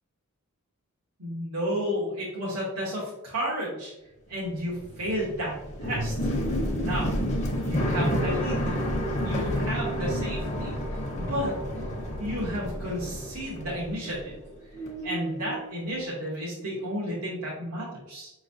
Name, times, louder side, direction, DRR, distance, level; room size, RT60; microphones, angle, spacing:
voice 1, 1.2-3.9 4.3-6.1 6.8-7.1 7.7-8.8 9.2-10.7 11.2-11.5 12.2-14.4 15.0-18.3, equal, 85° right, -6 dB, 1.1 m, -32 dB
sound 1, 4.4-14.5 14.7-15.6, equal, 30° left, 0.7 m, -30 dB
5.2 x 3.1 x 2.6 m, 0.99 s
head